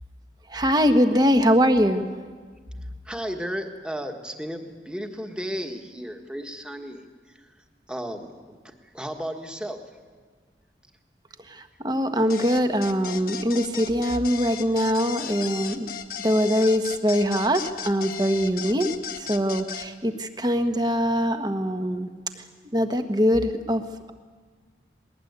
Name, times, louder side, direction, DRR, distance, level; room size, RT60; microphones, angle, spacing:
voice 1, 0.5-2.1 11.5-15.9 16.2-18.9 19.2-22.1 22.7-23.8, equal, 25° right, 8 dB, 1.3 m, -22 dB
voice 2, 3.0-7.5 7.9-9.8, equal, 5° right, 4 dB, 1.6 m, -34 dB
sound 1, 12.3-19.9, left 9 dB, 55° left, 1.4 m, -36 dB
20.5 x 19.0 x 9.6 m, 1.5 s
head